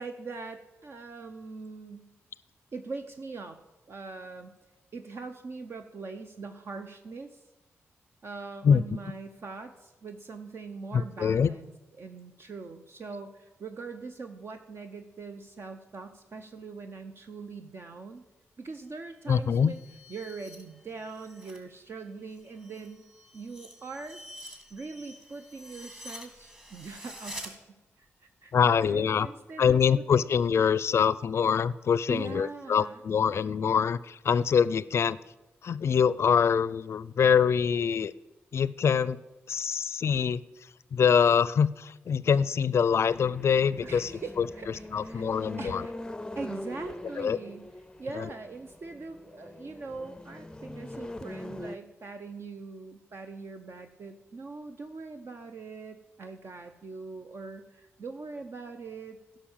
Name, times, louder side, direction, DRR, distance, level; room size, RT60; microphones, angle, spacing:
voice 1, 0.0-2.1 2.7-3.6 3.9-4.5 4.9-7.4 8.2-18.2 18.6-19.8 20.1-23.0 23.3-24.2 24.7-27.5 28.0-30.3 32.1-33.0 43.8-45.2 45.6-45.9 46.4-47.7 48.0-59.4, right 4 dB, 55° right, 6 dB, 0.7 m, -42 dB
voice 2, 10.9-11.5 19.3-19.7 28.5-29.3 29.6-35.2 35.6-38.1 38.5-39.2 39.5-40.4 40.9-44.1 44.4-44.5 44.9-45.9 47.2-47.4 48.2-48.3, left 7 dB, 65° left, 18 dB, 0.4 m, -24 dB
sound 1, 19.2-21.6 22.0-27.5, equal, 20° right, 2.1 m, -47 dB
sound 2, 43.1-51.8, left 1 dB, 15° left, 0.5 m, -42 dB
11.5 x 5.8 x 7.2 m, 1.0 s
cardioid pair, 60°, 5 cm